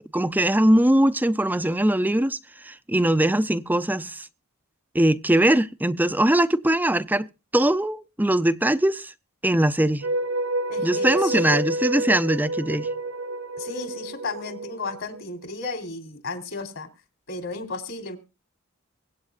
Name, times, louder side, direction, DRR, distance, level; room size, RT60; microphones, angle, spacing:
voice 1, 0.1-2.4 2.6-4.3 4.9-7.3 7.5-9.1 9.4-10.1 10.8-12.9, right 1 dB, 10° right, 0.6 m, -21 dB
sound 1, 10.0-15.2, right 1 dB, 60° right, 0.9 m, -29 dB
voice 2, 10.7-11.6 13.6-16.9 17.3-18.2, left 3 dB, 65° left, 3.4 m, -34 dB
23.5 x 8.7 x 2.5 m
head